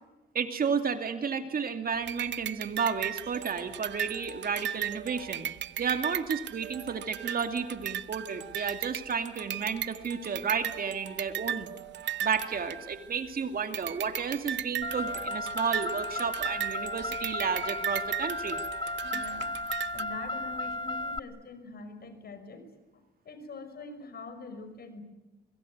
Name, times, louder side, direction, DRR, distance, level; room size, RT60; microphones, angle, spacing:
voice 1, 0.3-5.5 5.8-11.7 12.2-18.6, right 6 dB, 50° right, 7 dB, 2.5 m, -32 dB
sound 1, 2.1-13.3 13.7-20.0, right 11 dB, 65° right, 0.9 m, -37 dB
Car, 14.8-21.2, left 2 dB, 25° left, 1.2 m, -35 dB
voice 2, 19.0-19.5 19.9-22.7 23.2-25.0, left 3 dB, 50° left, 9 dB, 5.8 m, -44 dB
24.0 x 22.0 x 9.5 m, 1.1 s
cardioid pair, 90°, 20 cm